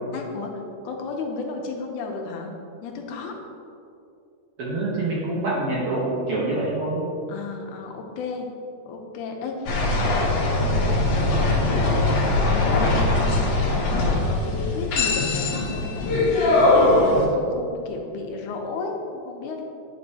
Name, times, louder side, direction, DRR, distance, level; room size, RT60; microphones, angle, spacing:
voice 1, 0.1-0.5 0.8-2.5 2.8-3.4 7.3-8.5 8.9-10.3 10.6-14.0 14.3-19.6, left 4 dB, 85° left, 2 dB, 2.2 m, -33 dB
voice 2, 4.6-7.1, right 2 dB, 65° right, -5 dB, 1.5 m, -26 dB
sound 1, 9.7-17.2, left 2 dB, 65° left, 1.8 m, -21 dB
10.0 x 5.3 x 2.7 m, 2.6 s
omnidirectional pair, 3.5 m